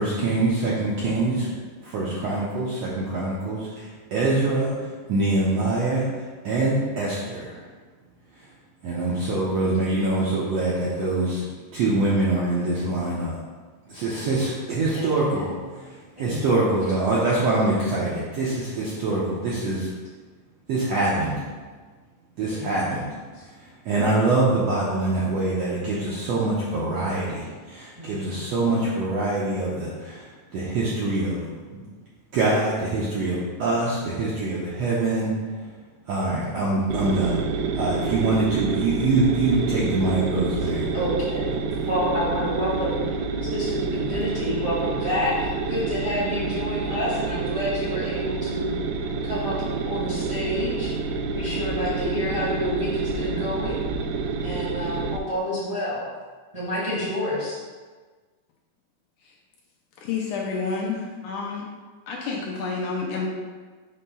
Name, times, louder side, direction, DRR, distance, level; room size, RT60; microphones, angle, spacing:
voice 1, 0.0-1.5 1.8-7.6 8.8-11.5 11.7-13.4 13.9-19.9 20.7-21.4 22.4-23.1 23.6-31.8 32.3-35.3 35.6-35.7 36.1-37.4 37.8-40.9, right 2 dB, 75° right, -6 dB, 1.5 m, -24 dB
voice 2, 14.9-15.6 16.2-16.5 22.4-22.9 23.3-23.4 28.0-28.4 40.9-43.0 43.5-45.3 45.7-48.7 49.2-49.6 49.8-50.9 51.3-53.8 54.4-56.0 56.5-57.6, left 1 dB, 20° right, -9 dB, 0.9 m, -29 dB
sound 1, 36.9-55.2, right 4 dB, 90° right, 2.4 m, -28 dB
voice 3, 60.0-61.7 62.1-63.3, left 4 dB, 70° left, -2 dB, 2.1 m, -29 dB
6.5 x 3.4 x 5.4 m, 1.4 s
omnidirectional pair, 4.0 m